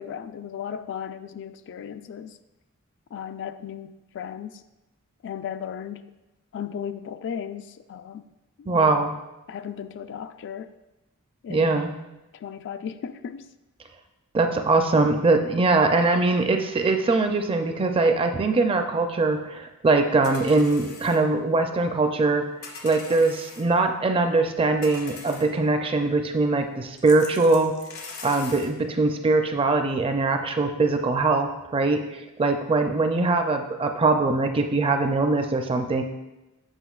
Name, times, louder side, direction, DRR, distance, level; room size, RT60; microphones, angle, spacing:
voice 1, 0.0-2.4 3.1-4.6 5.2-6.1 6.5-8.2 8.6-9.0 9.5-10.7 11.4-11.8 12.3-13.5, left 8 dB, 55° left, 10 dB, 0.3 m, -36 dB
voice 2, 8.7-9.1 11.5-11.9 14.3-22.5 22.8-27.7 28.2-36.0, right 3 dB, 25° right, 6 dB, 0.4 m, -22 dB
sound 1, 20.2-21.2 22.6-23.7 24.8-25.5 27.0-28.7, left 4 dB, 75° left, 1.2 m, -41 dB
8.0 x 6.0 x 2.4 m, 0.99 s
head